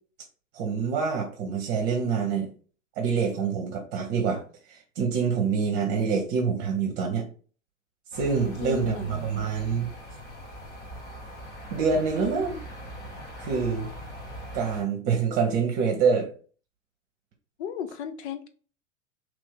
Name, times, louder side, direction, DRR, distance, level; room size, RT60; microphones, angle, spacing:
voice 1, 0.5-2.5 3.0-4.4 4.7-7.3 8.1-9.9 11.7-12.6 13.4-13.9 14.5-16.3, right 5 dB, 45° right, 0.9 m, -26 dB
sound 1, 8.1-14.8, equal, 25° left, 1.0 m, -41 dB
voice 2, 8.6-9.6 17.6-18.5, left 9 dB, 55° left, 0.7 m, -35 dB
3.0 x 2.8 x 3.6 m
hypercardioid pair, 95°, 39 cm